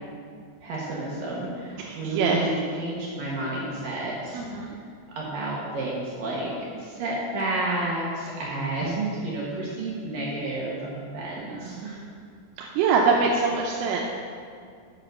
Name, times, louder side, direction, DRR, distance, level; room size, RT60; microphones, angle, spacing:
voice 1, 0.6-4.4 5.2-12.0, right 2 dB, 70° right, -5 dB, 2.2 m, -31 dB
voice 2, 1.8-2.4 4.3-4.7 11.5-11.8 12.6-14.1, right 5 dB, 90° right, -2 dB, 3.4 m, -24 dB
9.2 x 6.2 x 6.5 m, 2.2 s
omnidirectional pair, 5.7 m